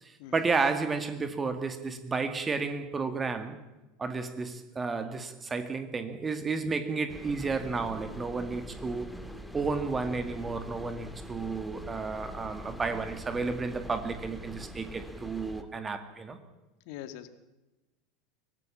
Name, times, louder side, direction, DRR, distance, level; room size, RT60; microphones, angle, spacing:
voice 1, 0.0-3.6 4.0-9.1 9.5-16.4, right 4 dB, 20° right, 9 dB, 2.2 m, -32 dB
sound 1, 7.1-15.6, equal, ahead, 2.2 m, -44 dB
voice 2, 16.9-17.3, left 12 dB, 55° left, 11 dB, 1.9 m, -42 dB
24.5 x 18.0 x 7.4 m, 1.1 s
figure-of-eight pair, 80°, 0 cm